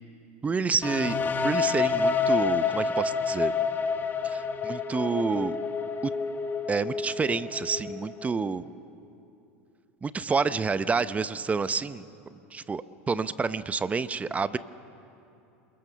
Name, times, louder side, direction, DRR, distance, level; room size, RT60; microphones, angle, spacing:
voice 1, 0.4-3.5 4.2-5.6 6.0-6.1 6.7-8.6 10.0-12.0 12.5-14.6, right 4 dB, 20° right, 14 dB, 0.8 m, -28 dB
sound 1, 0.8-8.6, left 5 dB, 25° left, 1.5 m, -28 dB
28.0 x 21.5 x 6.8 m, 2.8 s
hypercardioid pair, 95°, 7 cm